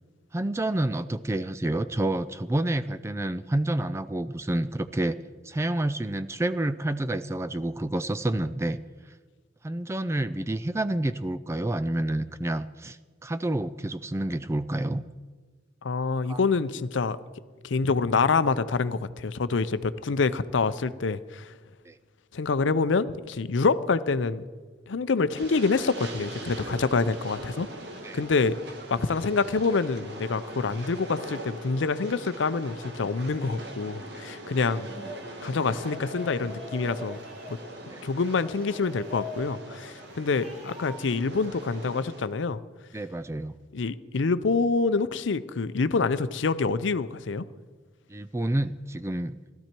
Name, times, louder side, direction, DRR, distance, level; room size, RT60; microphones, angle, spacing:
voice 1, 0.3-5.2 5.4-8.8 9.6-15.0 16.3-16.4 21.9-22.0 28.0-28.2 34.9-35.1 37.9-38.0 42.9-43.5 48.1-49.4, right 1 dB, 15° right, 12 dB, 0.3 m, -29 dB
voice 2, 15.8-17.2 17.6-21.5 22.3-24.4 24.9-27.7 28.1-28.5 28.9-34.9 35.4-37.2 37.5-37.6 38.0-42.6 43.7-47.5, left 4 dB, 75° left, 14 dB, 0.5 m, -26 dB
Train, 25.3-42.3, right 1 dB, 60° right, 1.5 m, -42 dB
sound 1, 34.7-35.3 35.8-37.7 38.2-39.5 40.0-41.1, left 1 dB, 35° right, 2.2 m, -43 dB
16.5 x 13.0 x 4.5 m, 1.4 s
head